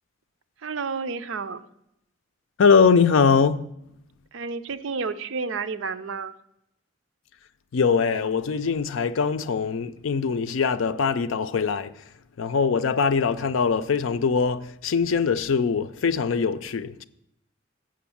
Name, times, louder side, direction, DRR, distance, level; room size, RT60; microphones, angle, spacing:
voice 1, 0.6-1.6 4.3-6.3, right 4 dB, 80° right, 0.5 m, -30 dB
voice 2, 2.6-3.7 7.7-12.0 12.4-17.0, left 5 dB, 90° left, 0.4 m, -22 dB
7.8 x 6.1 x 7.1 m
head